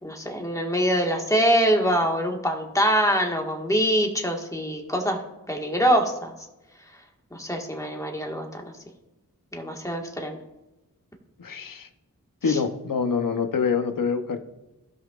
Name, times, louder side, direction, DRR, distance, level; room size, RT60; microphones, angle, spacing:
voice 1, 0.0-5.2 5.5-6.3 7.3-8.7 9.5-10.4 12.5-12.6, equal, 10° left, 1 dB, 1.6 m, -24 dB
voice 2, 11.4-11.9 12.4-14.4, left 5 dB, 80° left, 7 dB, 0.9 m, -25 dB
16.0 x 5.5 x 2.5 m, 1.0 s
wide cardioid pair, 55°, 32 cm